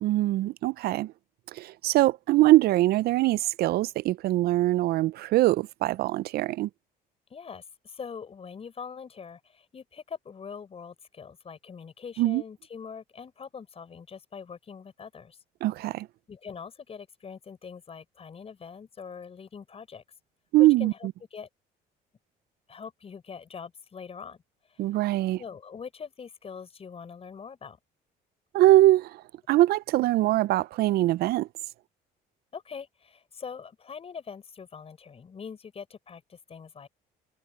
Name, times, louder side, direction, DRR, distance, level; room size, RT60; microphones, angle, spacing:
voice 1, 0.0-1.1 1.5-6.7 12.2-12.4 15.6-16.1 20.5-20.9 24.8-25.4 28.5-29.2 29.5-31.5, right 16 dB, 70° right, 0.4 m, -22 dB
voice 2, 7.3-15.4 16.3-20.0 20.6-21.5 22.7-24.4 24.7-24.8 25.4-27.8 32.5-36.9, left 6 dB, 35° left, 5.9 m, -43 dB
cardioid pair, 110°, 17 cm